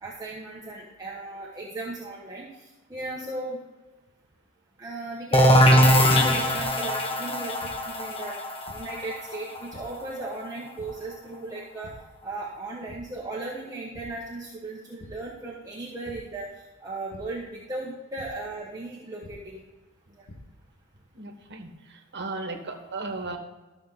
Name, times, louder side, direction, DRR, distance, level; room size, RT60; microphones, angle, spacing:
voice 1, 0.0-2.5 2.9-3.6 4.8-8.4 8.7-11.9 12.2-16.5 16.8-19.6, right 2 dB, 15° right, -4 dB, 1.2 m, -36 dB
sound 1, 5.3-10.9, equal, 25° left, 1.1 m, -21 dB
sound 2, 6.5-6.6 7.6-7.7 8.7-8.8 9.7-9.8 10.8-10.9 11.8-11.9 12.4-12.6 12.9-13.0 13.9-14.0 15.0-15.1 16.0-16.1 17.1-17.2 18.2-18.3 19.2-19.3 20.0-20.4, left 1 dB, 75° left, 1.7 m, -45 dB
voice 2, 21.1-21.7 22.1-23.4, right 3 dB, 50° right, 4 dB, 1.5 m, -35 dB
13.5 x 6.8 x 4.1 m, 1.2 s
head